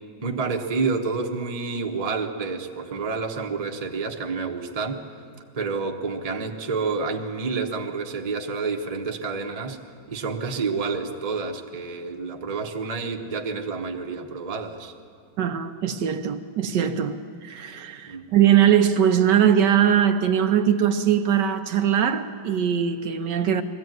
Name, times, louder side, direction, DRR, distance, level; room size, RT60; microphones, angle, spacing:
voice 1, 0.2-5.0 5.5-9.8 10.1-14.9 18.1-18.2, right 4 dB, 25° right, 1.0 m, -29 dB
voice 2, 15.4-17.2 17.4-23.6, right 9 dB, 70° right, 1.3 m, -21 dB
20.0 x 14.5 x 9.3 m
omnidirectional pair, 2.0 m